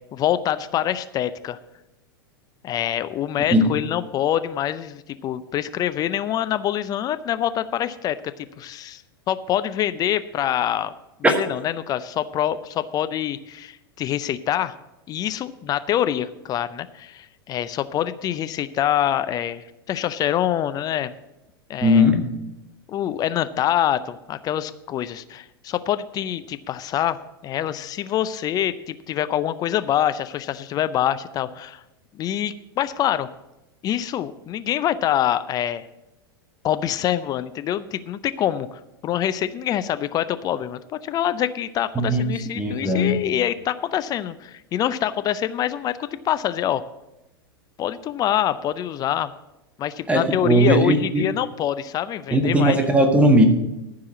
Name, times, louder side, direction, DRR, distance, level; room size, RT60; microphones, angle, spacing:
voice 1, 0.1-1.6 2.6-10.9 11.3-14.8 15.1-21.1 21.7-22.1 22.9-27.2 27.4-31.8 32.1-33.3 33.8-35.9 36.6-46.8 47.8-49.3 49.8-52.8, left 11 dB, 30° left, 13 dB, 0.5 m, -25 dB
voice 2, 21.8-22.2 41.9-42.2 42.5-43.2 50.1-51.3 52.3-53.4, equal, 10° right, 4 dB, 1.5 m, -18 dB
14.0 x 4.8 x 6.9 m, 0.93 s
figure-of-eight pair, 95°, 13 cm